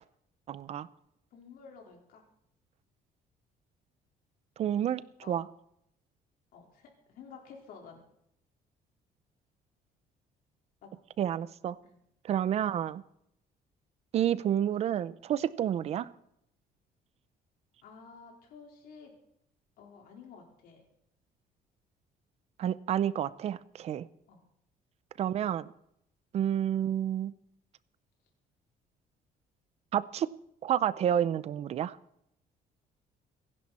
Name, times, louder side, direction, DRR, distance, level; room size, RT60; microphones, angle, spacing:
voice 1, 0.5-0.9 4.6-5.0 5.3-5.5 11.2-11.8 12.2-13.0 14.1-16.1 22.6-24.1 25.2-25.7 26.3-27.3 29.9-30.3 30.6-32.0, right 10 dB, 40° right, 17 dB, 0.6 m, -29 dB
voice 2, 1.3-2.2 5.2-5.5 6.5-8.0 10.8-10.9 11.8-12.0 17.8-19.1 19.8-20.8 24.3-24.4, left 5 dB, 70° left, 0 dB, 4.4 m, -51 dB
26.5 x 11.0 x 4.3 m, 0.76 s
cardioid pair, 175°, 16 cm